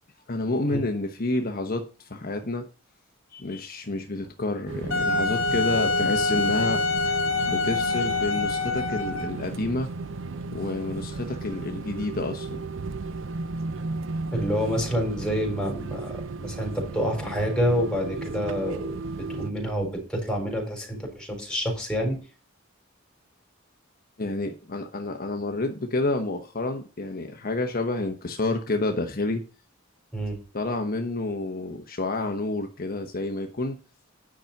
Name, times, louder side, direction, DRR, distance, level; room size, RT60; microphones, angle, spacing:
voice 1, 0.3-2.7 3.3-6.8 7.4-9.9 10.5-12.6 24.2-29.4 30.5-33.8, left 2 dB, 45° left, 4 dB, 1.1 m, -29 dB
sound 1, 4.7-19.5, right 3 dB, 70° right, 0.6 m, -34 dB
Wind instrument woodwind instrument, 4.9-9.4, left 3 dB, 80° left, 1.5 m, -25 dB
voice 2, 14.3-19.0 19.3-22.2 30.1-30.4, equal, 5° left, 0 dB, 4.3 m, -28 dB
10.0 x 5.9 x 5.3 m, 0.36 s
head